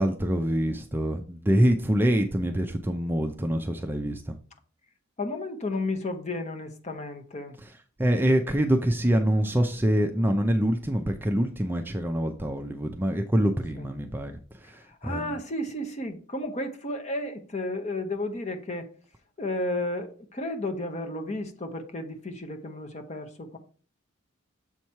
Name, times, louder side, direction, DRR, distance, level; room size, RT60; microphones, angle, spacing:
voice 1, 0.0-4.3 7.6-7.7 8.0-15.4, equal, 10° right, 0.4 m, -25 dB
voice 2, 5.2-7.6 13.8-13.9 14.6-18.9 19.4-23.6, left 1 dB, 30° left, 0.8 m, -33 dB
7.2 x 3.0 x 5.4 m
head